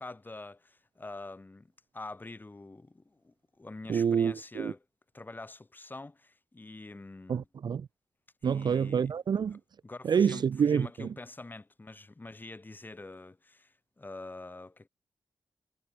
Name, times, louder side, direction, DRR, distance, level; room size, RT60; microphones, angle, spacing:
voice 1, 0.0-4.8 5.1-7.5 8.4-9.1 9.8-14.9, left 2 dB, 20° left, 3.4 m, -46 dB
voice 2, 3.9-4.7 7.3-7.9 8.4-9.6 10.0-11.1, right 7 dB, 55° right, 0.4 m, -27 dB
wide cardioid pair, 140°, 9 cm